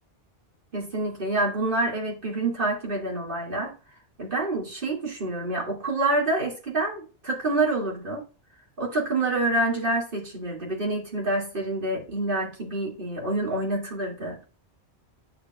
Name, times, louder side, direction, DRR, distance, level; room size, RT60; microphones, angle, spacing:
voice 1, 0.7-3.7 4.2-8.2 8.8-14.4, right 2 dB, 50° right, 2.6 m, -27 dB
9.9 x 5.1 x 2.3 m
omnidirectional pair, 1.2 m